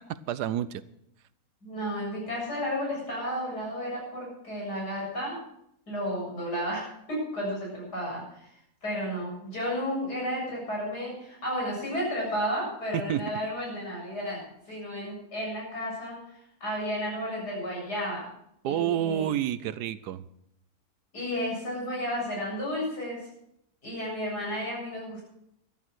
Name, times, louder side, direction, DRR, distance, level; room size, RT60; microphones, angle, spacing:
voice 1, 0.1-0.8 12.9-13.3 18.6-20.2, right 11 dB, 85° right, 16 dB, 1.3 m, -29 dB
voice 2, 1.6-5.4 5.9-8.5 8.8-14.4 14.7-18.3 18.6-19.3 21.1-23.3 23.8-25.2, equal, 90° left, -3 dB, 8.2 m, -32 dB
13.0 x 12.0 x 6.3 m, 0.76 s
omnidirectional pair, 1.7 m